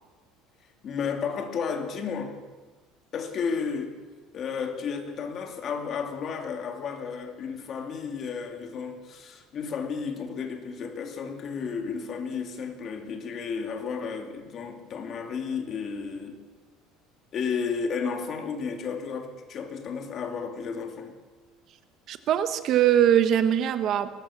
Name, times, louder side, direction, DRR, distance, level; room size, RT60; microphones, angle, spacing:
voice 1, 0.8-2.4 3.1-4.0 4.3-16.4 17.3-21.1, left 6 dB, 35° left, 2.9 m, -32 dB
voice 2, 22.1-24.1, right 10 dB, 40° right, 1.2 m, -22 dB
22.0 x 19.5 x 7.4 m
cardioid pair, 165°, 0 cm